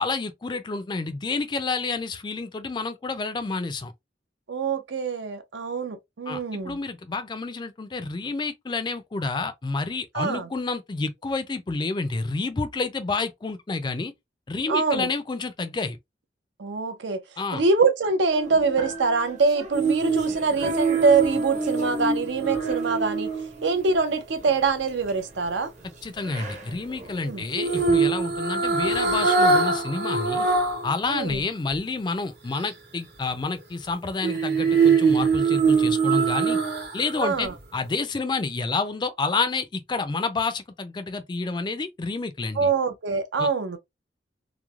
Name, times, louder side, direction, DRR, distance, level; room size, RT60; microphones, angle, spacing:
voice 1, 0.0-3.9 6.3-14.1 14.5-16.0 17.4-17.6 26.0-30.5 30.8-36.6 36.9-42.7 43.4-43.5, left 3 dB, 25° left, 0.3 m, -29 dB
voice 2, 4.5-6.8 10.1-10.5 14.7-15.1 16.6-17.2 17.5-23.3 23.6-25.7 27.2-27.4 31.1-31.4 37.2-37.5 42.6-43.8, right 4 dB, 80° right, 0.6 m, -24 dB
sound 1, 18.3-28.0, right 2 dB, 40° right, 0.8 m, -39 dB
sound 2, 19.7-24.0 27.5-30.9 31.3-31.4 34.2-37.1 37.5-37.6, right 4 dB, 65° right, 1.0 m, -23 dB
3.0 x 2.0 x 2.3 m
head